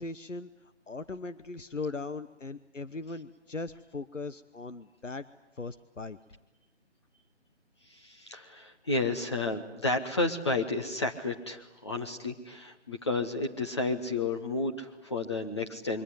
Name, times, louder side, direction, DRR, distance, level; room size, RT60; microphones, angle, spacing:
voice 1, 0.0-5.2 5.6-6.2, left 3 dB, 85° left, 12 dB, 1.2 m, -39 dB
voice 2, 7.9-16.0, left 2 dB, 25° left, 3 dB, 1.1 m, -32 dB
26.5 x 23.5 x 9.6 m, 0.98 s
figure-of-eight pair, 155°, 36 cm